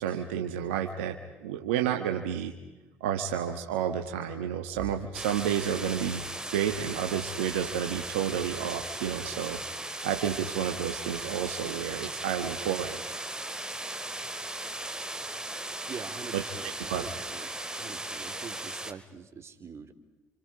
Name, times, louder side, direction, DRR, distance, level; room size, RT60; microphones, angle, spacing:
voice 1, 0.0-2.5 3.0-6.2 6.5-9.6 10.0-13.0 16.3-16.4 16.9-17.1, right 9 dB, 85° right, 5 dB, 1.4 m, -30 dB
sound 1, 5.1-18.9, right 1 dB, 10° right, 2.6 m, -37 dB
voice 2, 15.9-17.5 17.8-19.9, right 6 dB, 45° right, 8 dB, 3.1 m, -44 dB
29.5 x 28.0 x 4.9 m, 1.1 s
hypercardioid pair, 55°, 6 cm